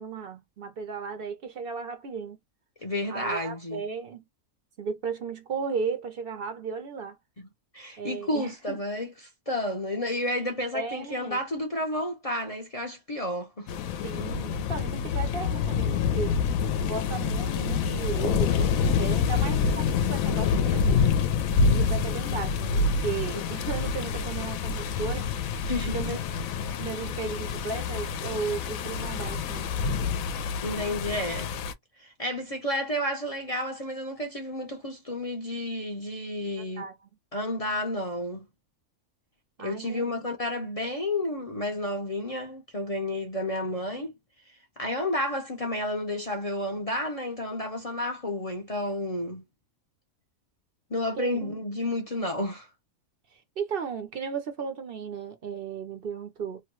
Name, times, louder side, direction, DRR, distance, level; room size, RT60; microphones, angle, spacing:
voice 1, 0.0-2.4 3.1-4.2 4.8-7.2 8.0-8.8 10.7-11.4 14.0-16.4 16.9-21.0 21.6-25.6 25.9-26.2 26.8-29.8 36.6-37.0 39.6-40.1 51.1-51.4 53.6-56.6, right 5 dB, 55° right, 0.6 m, -35 dB
voice 2, 2.8-3.8 7.4-7.5 7.7-13.7 25.7-26.1 30.6-31.5 32.0-36.9 37.3-38.5 39.6-44.1 44.8-49.4 50.9-52.7, left 1 dB, 40° left, 0.5 m, -31 dB
sound 1, 13.7-31.7, left 5 dB, 75° left, 0.9 m, -27 dB
3.0 x 2.1 x 3.0 m
omnidirectional pair, 1.5 m